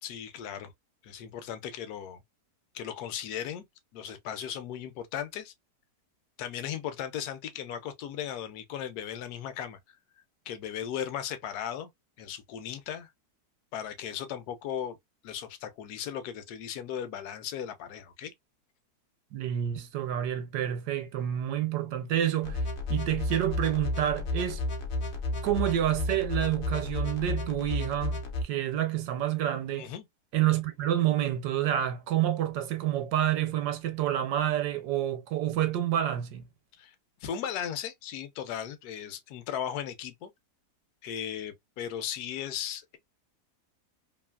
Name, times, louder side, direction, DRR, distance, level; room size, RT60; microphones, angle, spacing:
voice 1, 0.0-0.7 1.0-2.2 2.7-3.6 3.9-5.5 6.4-9.8 10.5-11.9 12.2-13.1 13.7-15.0 15.2-18.3 29.7-30.1 36.8-36.9 37.2-40.3 41.0-43.0, left 9 dB, 75° left, 1.1 m, -37 dB
voice 2, 19.3-22.6 22.9-24.6 25.4-28.2 28.4-29.9 30.3-36.4, right 11 dB, 80° right, 1.2 m, -28 dB
sound 1, 22.4-28.4, left 2 dB, 60° left, 0.7 m, -32 dB
3.0 x 2.4 x 2.2 m
omnidirectional pair, 1.7 m